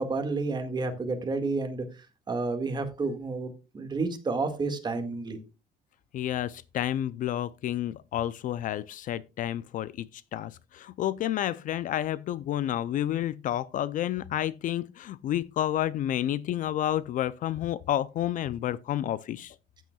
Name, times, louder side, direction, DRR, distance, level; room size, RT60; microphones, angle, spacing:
voice 1, 0.0-1.8 2.3-5.4, right 3 dB, 25° right, 1.8 m, -30 dB
voice 2, 6.1-19.5, left 12 dB, 50° left, 0.4 m, -30 dB
14.0 x 9.1 x 2.3 m
cardioid pair, 130°, 17 cm